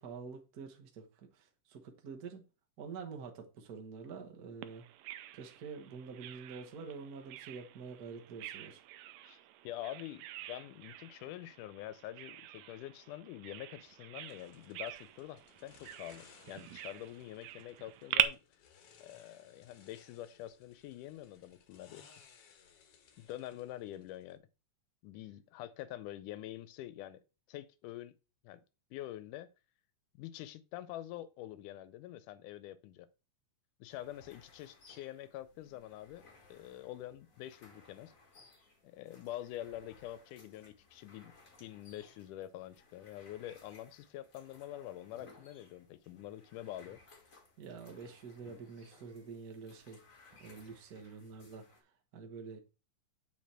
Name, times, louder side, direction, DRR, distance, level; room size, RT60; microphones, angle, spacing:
voice 1, 0.0-2.4 2.8-4.8 5.3-8.8 47.6-50.0 50.4-51.6 52.1-52.6, right 5 dB, 65° right, 0.9 m, -47 dB
Bird vocalization bird call bird song, 4.6-18.2, right 14 dB, 80° right, 1.6 m, -42 dB
voice 2, 9.2-18.4 19.0-22.1 23.2-24.4 25.0-27.2 27.5-28.1 28.4-28.6 28.9-29.5 30.1-33.1 33.8-38.1 38.8-41.3 41.6-47.0, left 13 dB, 85° left, 2.2 m, -46 dB
sound 1, 14.3-24.4, left 7 dB, 65° left, 1.7 m, -63 dB
sound 2, 33.9-51.8, left 3 dB, 35° left, 1.5 m, -62 dB
7.4 x 4.9 x 4.3 m
omnidirectional pair, 3.6 m